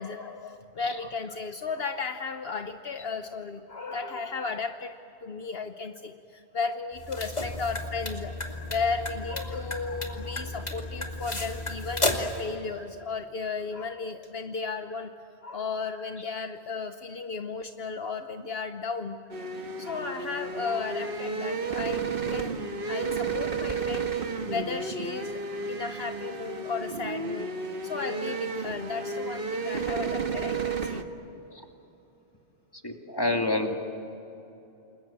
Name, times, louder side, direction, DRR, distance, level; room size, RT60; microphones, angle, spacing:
voice 1, 0.0-4.9 5.2-15.1 15.4-19.2 19.8-27.5 27.8-31.0, left 4 dB, 65° left, 7 dB, 1.2 m, -34 dB
sound 1, 6.9-12.4, left 2 dB, 40° left, 2.5 m, -33 dB
sound 2, 19.3-31.0, right 4 dB, 55° right, 1.6 m, -32 dB
voice 2, 32.8-33.7, left 2 dB, 20° left, 3 dB, 2.4 m, -28 dB
29.0 x 21.5 x 8.8 m, 3.0 s
omnidirectional pair, 1.1 m